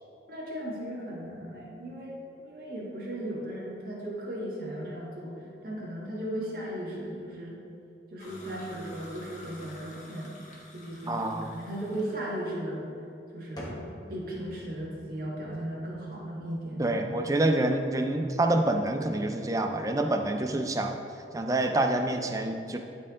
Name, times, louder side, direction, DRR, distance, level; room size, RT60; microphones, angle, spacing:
voice 1, 0.3-5.3 5.6-7.6 8.1-10.3 10.7-12.9 13.3-17.0, right 1 dB, 50° right, -5 dB, 1.8 m, -36 dB
sound 1, 8.2-12.4, equal, 40° left, 1.4 m, -49 dB
voice 2, 11.1-11.5 16.8-20.9 21.3-22.8, right 2 dB, 20° right, 4 dB, 0.4 m, -27 dB
sound 2, 13.6-21.3, equal, 20° left, 1.4 m, -50 dB
12.0 x 4.6 x 3.8 m, 2.6 s
head